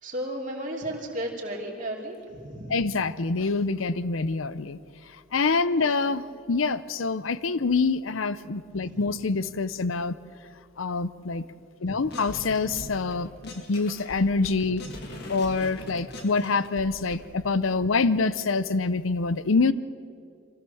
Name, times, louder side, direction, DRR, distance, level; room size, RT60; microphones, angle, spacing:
voice 1, 0.0-2.9 5.8-6.2 8.8-9.0 11.9-12.1 14.8-14.9, right 1 dB, 40° right, -1 dB, 3.0 m, -35 dB
voice 2, 2.7-4.8 5.3-10.1 10.8-11.4 11.8-13.3 13.6-14.8 15.3-19.7, left 4 dB, 80° left, 16 dB, 0.7 m, -26 dB
sound 1, 12.1-13.1 13.4-17.1, left 1 dB, 50° left, 2.5 m, -41 dB
23.5 x 16.0 x 7.1 m, 2.3 s
head